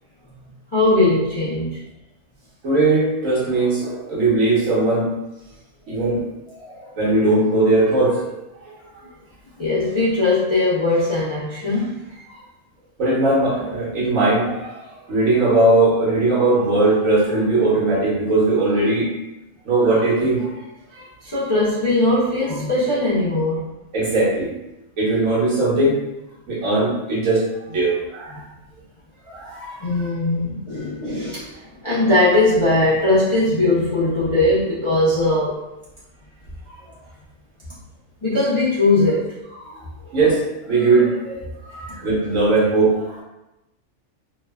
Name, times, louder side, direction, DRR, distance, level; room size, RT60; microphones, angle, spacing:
voice 1, 0.7-1.8 9.6-11.9 21.2-23.6 29.8-31.5 31.8-35.6 38.2-39.3, left 2 dB, 35° left, -11 dB, 0.4 m, -19 dB
voice 2, 2.6-5.1 5.9-6.3 6.6-8.4 13.0-14.8 15.1-19.1 19.6-20.5 20.9-21.0 23.9-24.5 25.0-26.0 26.5-28.4 29.3-29.8 39.6-39.8 40.1-43.2, right 2 dB, 85° right, -8 dB, 1.4 m, -19 dB
3.0 x 2.1 x 2.2 m, 0.93 s
omnidirectional pair, 1.4 m